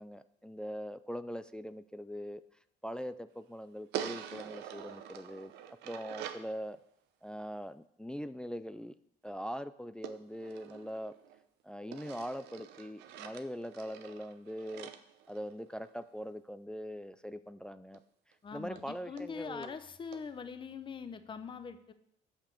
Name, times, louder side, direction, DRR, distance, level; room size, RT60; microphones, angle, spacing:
voice 1, 0.0-2.4 2.8-5.5 5.8-6.8 7.2-9.0 9.2-11.1 11.6-14.9 15.3-18.0 18.5-19.7, equal, 5° left, 12 dB, 0.3 m, -42 dB
sound 1, 3.9-6.5 10.0-11.4 11.9-16.0 17.9-18.0 18.3-18.4 18.8-18.9 19.2-19.3 19.6-19.8 20.1-20.2, right 10 dB, 85° right, 0.7 m, -45 dB
voice 2, 18.4-21.9, left 5 dB, 30° left, 11 dB, 0.7 m, -43 dB
6.8 x 5.8 x 6.5 m, 0.72 s
cardioid pair, 110°, 17 cm